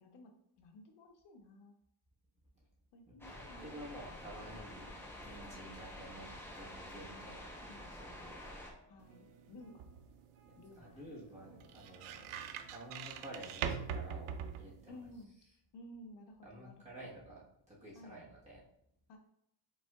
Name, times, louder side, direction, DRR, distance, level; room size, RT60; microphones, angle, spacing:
voice 1, 0.0-1.8 2.9-3.7 4.0-4.8 6.9-7.9 8.9-9.8 10.6-11.2 14.9-15.4 15.7-17.1 17.9-18.3 19.1-19.2, left 1 dB, 55° left, 4 dB, 0.7 m, -56 dB
sound 1, 3.2-8.7, left 1 dB, 5° left, 0.5 m, -49 dB
voice 2, 3.3-7.5 7.9-8.8 10.5-15.0 16.4-18.6, right 1 dB, 15° right, -6 dB, 1.2 m, -52 dB
sound 2, 4.9-12.8, right 1 dB, 50° right, 1.6 m, -67 dB
sound 3, 9.0-15.2, right 7 dB, 90° right, 0.6 m, -44 dB
5.4 x 3.5 x 2.3 m, 0.73 s
cardioid pair, 165°, 49 cm